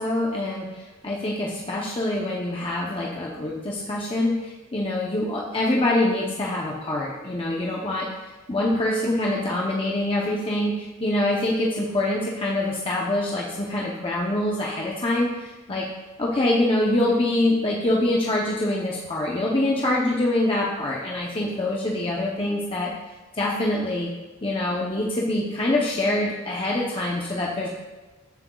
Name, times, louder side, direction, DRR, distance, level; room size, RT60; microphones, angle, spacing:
voice 1, 0.0-15.9 16.2-22.9 23.3-24.1 24.4-27.7, left 1 dB, 25° left, -3 dB, 0.8 m, -25 dB
14.5 x 7.5 x 2.3 m, 1.2 s
head